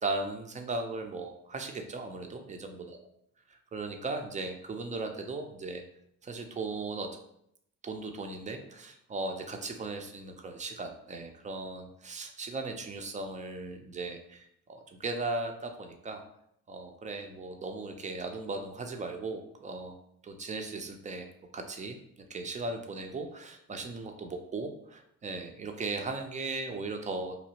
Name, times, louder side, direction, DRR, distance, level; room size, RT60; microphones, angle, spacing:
voice 1, 0.0-3.0 3.5-5.8 6.2-7.1 7.8-16.2 16.7-19.9 20.2-21.3 21.5-22.0 22.3-27.4, right 3 dB, 20° right, 4 dB, 0.4 m, -37 dB
2.9 x 2.7 x 2.7 m, 0.73 s
figure-of-eight pair, 45°, 40 cm